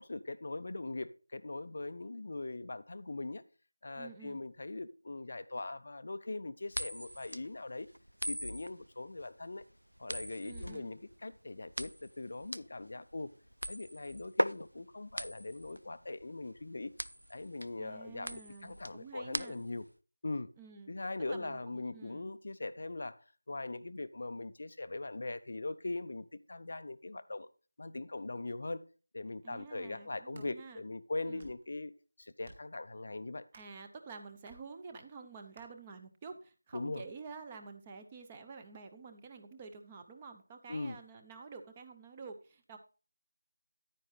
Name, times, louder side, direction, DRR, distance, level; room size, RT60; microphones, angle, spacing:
voice 1, 0.0-3.4 3.8-7.9 8.3-9.6 10.0-13.3 13.7-16.9 17.3-19.8 20.2-20.5 20.9-27.5 27.8-28.8 29.1-31.9 32.2-33.5 36.7-37.0 40.7-41.0, left 2 dB, 40° left, 0.5 m, -41 dB
voice 2, 3.9-4.4 10.4-10.9 17.8-19.6 20.6-20.9 21.3-22.3 29.4-30.8 31.3-31.5 33.5-42.8, right 5 dB, 15° right, 0.7 m, -49 dB
sound 1, 6.7-19.9, equal, 85° right, 0.4 m, -39 dB
sound 2, 30.1-30.5 31.2-31.7 32.4-32.8 33.5-33.8 34.5-34.6 35.5-35.7, right 2 dB, 30° right, 1.7 m, -57 dB
9.7 x 9.6 x 3.2 m
figure-of-eight pair, 165°, 0 cm